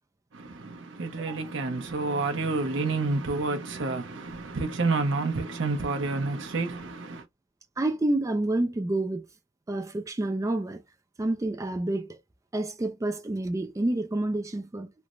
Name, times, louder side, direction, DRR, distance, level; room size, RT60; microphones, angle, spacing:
voice 1, 0.3-7.3, right 3 dB, 65° right, 0.7 m, -29 dB
voice 2, 7.8-9.3 9.7-10.8 11.2-12.2 12.5-14.9, right 2 dB, 15° right, 0.3 m, -28 dB
3.2 x 2.0 x 2.5 m
head